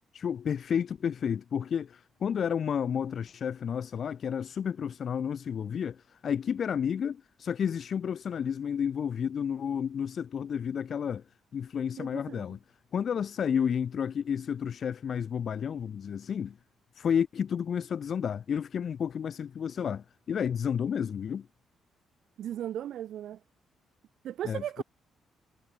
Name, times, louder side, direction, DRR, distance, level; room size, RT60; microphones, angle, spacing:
voice 1, 0.1-11.2 11.5-12.6 12.9-16.6 16.9-21.5 24.4-24.8, left 7 dB, 55° left, 0.4 m, -31 dB
voice 2, 12.0-12.4 22.4-23.4 24.2-24.8, right 11 dB, 75° right, 0.4 m, -36 dB
cardioid pair, 90°, 0 cm